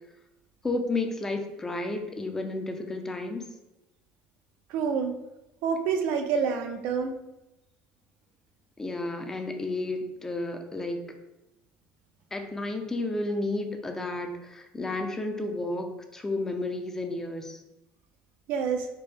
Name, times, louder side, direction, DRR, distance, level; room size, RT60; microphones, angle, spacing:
voice 1, 0.6-3.4 8.8-11.0 12.3-17.6, left 2 dB, 15° left, 5 dB, 0.4 m, -32 dB
voice 2, 4.7-5.1 5.6-7.1 18.5-18.9, right 6 dB, 70° right, 5 dB, 0.4 m, -27 dB
4.3 x 2.0 x 3.4 m, 0.93 s
cardioid pair, 135°, 3 cm